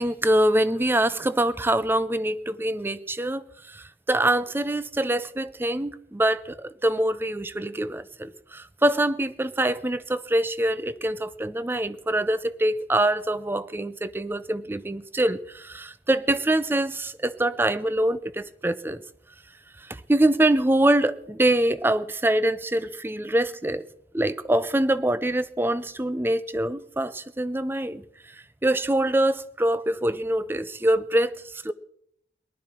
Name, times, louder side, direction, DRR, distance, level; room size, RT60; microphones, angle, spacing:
voice 1, 0.0-19.0 19.8-23.8 24.1-31.7, right 1 dB, 10° right, 0.5 m, -24 dB
19.0 x 11.5 x 4.4 m
head